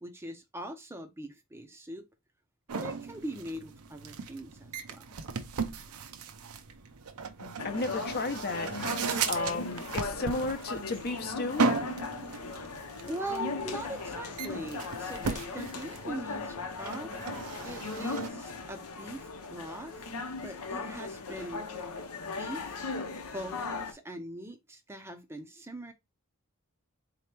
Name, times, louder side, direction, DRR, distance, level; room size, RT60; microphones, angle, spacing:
voice 1, 0.0-2.0 2.7-5.0 13.1-20.1 20.4-21.7 22.4-22.9 23.3-25.9, right 1 dB, 10° right, 0.5 m, -41 dB
sound 1, 2.7-18.3, right 4 dB, 90° right, 0.6 m, -36 dB
voice 2, 7.4-8.7 9.3-11.7, left 2 dB, 45° left, 0.7 m, -33 dB
sound 2, 7.6-23.9, left 3 dB, 90° left, 0.8 m, -38 dB
4.1 x 2.9 x 3.2 m
head